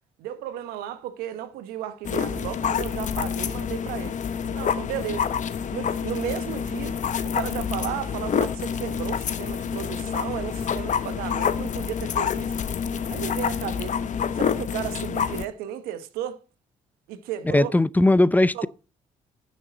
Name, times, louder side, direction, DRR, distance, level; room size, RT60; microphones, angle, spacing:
voice 1, 0.2-4.2 4.4-5.3 5.7-12.5 13.1-14.0 14.4-16.4 17.1-17.7 18.5-18.7, right 11 dB, 85° right, 1.1 m, -34 dB
sound 1, 2.0-15.4, left 7 dB, 55° left, 1.0 m, -27 dB
voice 2, 17.5-18.7, left 2 dB, 10° left, 0.5 m, -19 dB
11.5 x 6.3 x 4.1 m
supercardioid pair, 60°, 15 cm